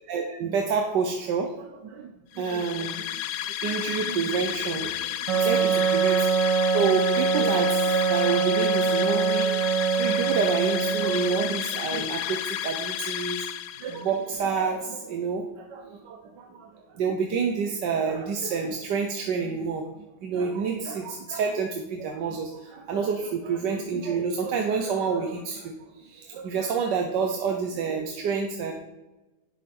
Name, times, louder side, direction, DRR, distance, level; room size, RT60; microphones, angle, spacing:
voice 1, 0.1-3.1 3.6-6.2 6.7-13.4 13.8-16.7 16.9-28.7, right 5 dB, 60° right, 3 dB, 1.4 m, -28 dB
sound 1, 2.3-14.2, left 12 dB, 85° left, 1.5 m, -32 dB
Wind instrument woodwind instrument, 5.3-11.7, right 6 dB, 90° right, 2.1 m, -24 dB
11.5 x 9.9 x 5.4 m, 1.1 s
omnidirectional pair, 2.4 m